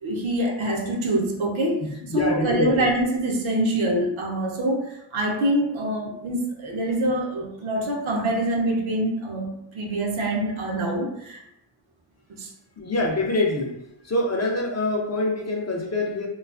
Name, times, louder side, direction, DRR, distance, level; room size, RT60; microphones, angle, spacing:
voice 1, 0.0-11.4 12.3-12.5, right 1 dB, 80° right, 0 dB, 0.6 m, -25 dB
voice 2, 1.8-2.9 12.8-13.8 14.0-16.3, left 2 dB, 35° left, 0 dB, 0.4 m, -25 dB
2.3 x 2.3 x 2.3 m, 0.79 s
wide cardioid pair, 110°, 47 cm